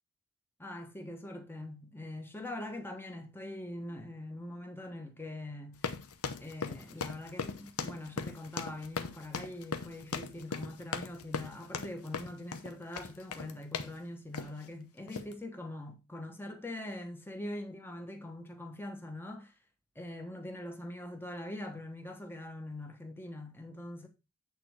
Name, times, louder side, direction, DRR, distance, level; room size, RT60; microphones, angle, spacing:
voice 1, 0.6-5.8 6.4-19.5 19.9-24.1, left 1 dB, 10° left, 1.2 m, -43 dB
sound 1, 5.7-14.0 14.3-14.7 15.1-15.3, left 5 dB, 85° left, 0.8 m, -39 dB
8.6 x 4.2 x 4.6 m
head